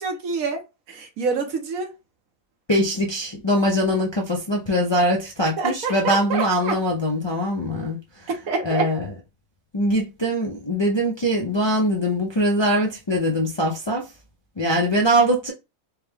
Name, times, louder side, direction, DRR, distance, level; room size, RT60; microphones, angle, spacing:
voice 1, 0.0-1.9 5.6-6.8 8.5-8.8, right 5 dB, 80° right, 1.3 m, -27 dB
voice 2, 2.7-8.3 8.6-9.1 9.7-14.1 14.6-15.5, equal, 35° left, 0.4 m, -22 dB
4.6 x 2.2 x 3.5 m
omnidirectional pair, 1.5 m